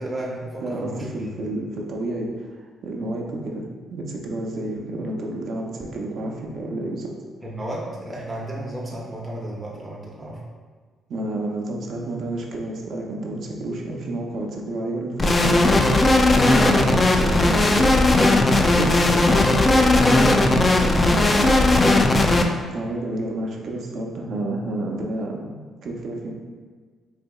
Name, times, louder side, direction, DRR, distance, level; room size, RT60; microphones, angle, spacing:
voice 1, 0.0-1.3 7.4-10.4 16.2-22.0, right 1 dB, 20° right, -4 dB, 0.6 m, -33 dB
voice 2, 0.6-7.1 11.1-15.8 22.7-26.3, right 2 dB, 65° right, 0 dB, 0.6 m, -30 dB
sound 1, 15.2-22.4, left 2 dB, 30° left, 0.3 m, -17 dB
4.1 x 2.7 x 2.3 m, 1.5 s
cardioid pair, 90°, 0 cm